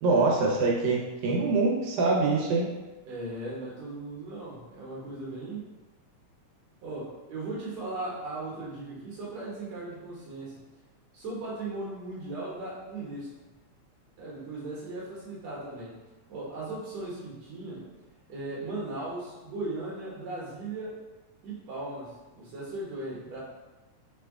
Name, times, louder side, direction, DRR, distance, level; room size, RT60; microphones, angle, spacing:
voice 1, 0.0-2.7, right 3 dB, 85° right, -3 dB, 2.3 m, -24 dB
voice 2, 3.1-5.6 6.8-10.6 11.1-13.3 14.2-16.0 16.3-17.9 18.3-21.0 21.4-23.4, right 2 dB, 65° right, -6 dB, 2.1 m, -37 dB
6.0 x 2.3 x 3.5 m, 1.1 s
omnidirectional pair, 3.4 m